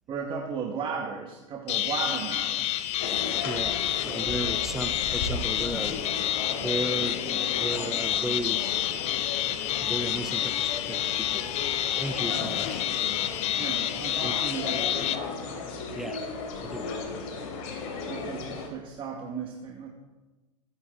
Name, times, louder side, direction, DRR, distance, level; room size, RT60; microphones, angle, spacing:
voice 1, 0.1-3.0 12.2-12.6 12.8-13.1 13.6-15.1 18.1-19.9, right 6 dB, 30° right, 0 dB, 2.0 m, -36 dB
sound 1, 1.7-15.2, left 12 dB, 35° left, 0.9 m, -29 dB
sound 2, 3.0-18.7, left 4 dB, 55° left, 3.5 m, -36 dB
voice 2, 3.4-6.0 6.6-8.7 9.8-11.4 12.0-13.2 14.2-14.3 16.0-16.2 16.6-16.9, right 2 dB, ahead, 10 dB, 0.8 m, -35 dB
22.0 x 10.0 x 4.0 m, 1.2 s
hypercardioid pair, 110°, 18 cm